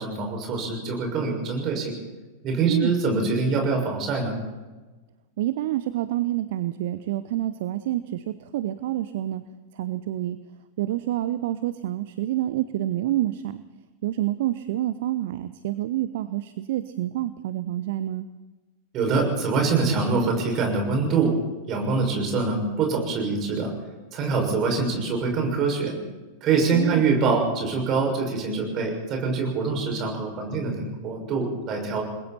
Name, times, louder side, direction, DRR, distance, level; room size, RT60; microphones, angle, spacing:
voice 1, 0.0-2.0 2.4-4.3 18.9-21.3 21.7-23.7 24.1-25.9 26.4-32.0, right 4 dB, 35° right, 2 dB, 6.4 m, -24 dB
voice 2, 5.4-9.4 9.7-10.4 10.8-13.6 14.0-18.3 26.7-27.0, right 14 dB, 55° right, 13 dB, 0.8 m, -28 dB
29.0 x 21.0 x 4.5 m, 1.2 s
figure-of-eight pair, 90°, 0 cm